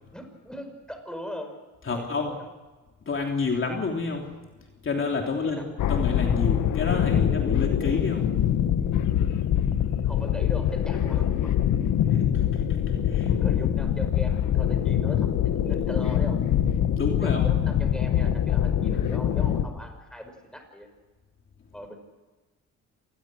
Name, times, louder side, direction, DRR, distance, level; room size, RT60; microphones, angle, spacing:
voice 1, 0.1-1.6 1.9-2.5 5.3-5.8 10.0-11.7 13.3-16.4 17.2-20.9 21.7-22.0, equal, 5° left, 5 dB, 5.4 m, -40 dB
voice 2, 1.9-2.4 3.0-4.3 4.8-8.3 12.1-12.6 13.0-13.3 16.9-17.5, left 4 dB, 40° left, 1 dB, 3.2 m, -29 dB
sound 1, 5.8-19.6, left 10 dB, 80° left, 1.6 m, -24 dB
26.5 x 20.0 x 6.3 m, 1.2 s
cardioid pair, 90°, 30 cm